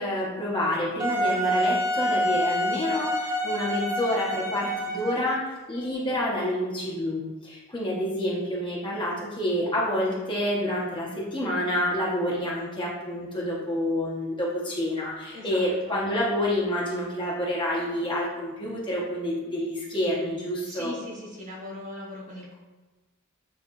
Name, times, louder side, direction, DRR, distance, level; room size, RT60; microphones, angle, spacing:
voice 1, 0.0-20.9, left 1 dB, 25° left, -6 dB, 1.6 m, -28 dB
Wind instrument woodwind instrument, 1.0-5.5, equal, 15° right, 0.8 m, -27 dB
voice 2, 15.3-15.9 20.6-22.5, left 1 dB, 40° right, -3 dB, 1.7 m, -40 dB
9.3 x 3.6 x 3.2 m, 1.2 s
head